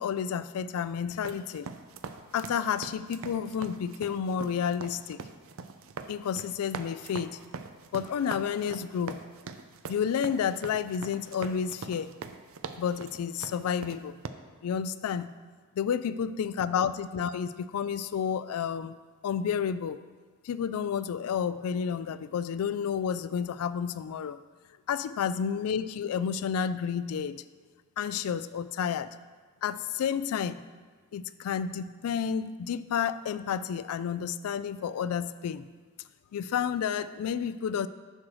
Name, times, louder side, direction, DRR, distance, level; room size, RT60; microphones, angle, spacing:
voice 1, 0.0-1.7 2.3-5.2 6.1-7.4 7.9-9.2 9.9-12.1 12.8-14.2 14.6-15.3 15.8-19.0 19.2-20.0 20.4-24.4 24.9-27.4 28.0-29.1 29.6-30.7 31.1-35.7 36.3-37.9, left 7 dB, 85° left, 15 dB, 0.3 m, -30 dB
sound 1, 1.2-14.3, right 5 dB, 70° right, 0.4 m, -42 dB
9.8 x 6.2 x 3.1 m, 1.5 s
head